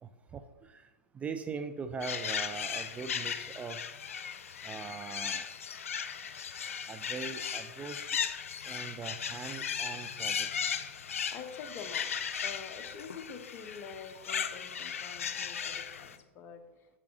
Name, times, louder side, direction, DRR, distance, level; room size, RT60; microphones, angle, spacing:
voice 1, 0.0-3.8 4.6-5.5 6.9-8.1 8.6-10.8, right 5 dB, 15° right, 9 dB, 0.4 m, -41 dB
sound 1, 2.0-16.2, left 7 dB, 80° left, 0.5 m, -37 dB
voice 2, 11.3-12.1 12.4-16.6, left 6 dB, 35° left, 6 dB, 1.0 m, -46 dB
8.2 x 7.4 x 3.0 m, 1.1 s
hypercardioid pair, 110°, 7 cm